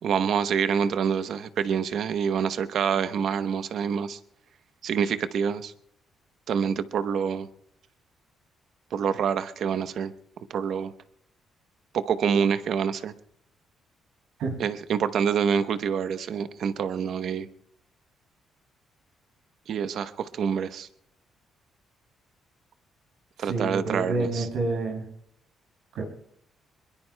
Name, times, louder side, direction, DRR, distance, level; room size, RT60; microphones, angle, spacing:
voice 1, 0.0-4.2 4.8-5.7 6.5-7.5 8.9-10.1 10.5-10.9 11.9-13.1 14.6-17.5 19.7-20.9 23.4-24.5, right 7 dB, 65° right, 11 dB, 0.9 m, -26 dB
voice 2, 23.4-25.1 25.9-26.0, right 3 dB, 85° right, 1 dB, 6.0 m, -28 dB
22.5 x 22.0 x 2.2 m, 0.73 s
cardioid pair, 90°, 0 cm